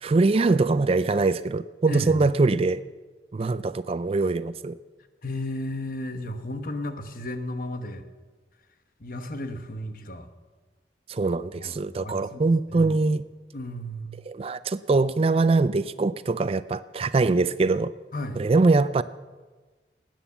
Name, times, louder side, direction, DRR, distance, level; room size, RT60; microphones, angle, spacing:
voice 1, 0.0-2.8 3.3-4.7 11.1-13.2 14.3-17.9 18.4-19.0, right 3 dB, 35° right, 15 dB, 0.4 m, -23 dB
voice 2, 1.9-2.2 5.2-8.0 9.0-10.3 11.5-11.7 12.0-13.0 13.5-14.2 18.1-18.4, left 1 dB, 50° left, 8 dB, 1.2 m, -34 dB
18.5 x 9.2 x 7.0 m, 1.3 s
head